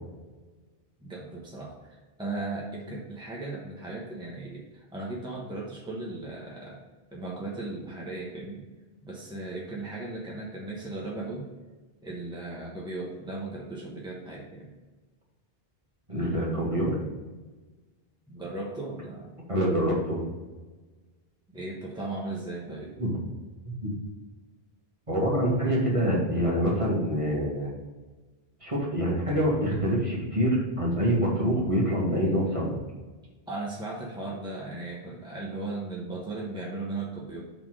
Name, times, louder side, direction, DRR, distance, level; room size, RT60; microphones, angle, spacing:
voice 1, 1.0-6.8 7.1-8.6 9.0-11.5 12.0-14.7 18.3-19.4 21.5-23.0 33.5-37.4, right 2 dB, 5° right, -4 dB, 1.1 m, -37 dB
voice 2, 16.1-17.0 19.5-20.3 23.0-23.1 23.8-23.9 25.1-27.7 28.6-32.7, equal, 30° right, -4 dB, 1.9 m, -26 dB
5.7 x 4.1 x 6.2 m, 1.3 s
omnidirectional pair, 1.0 m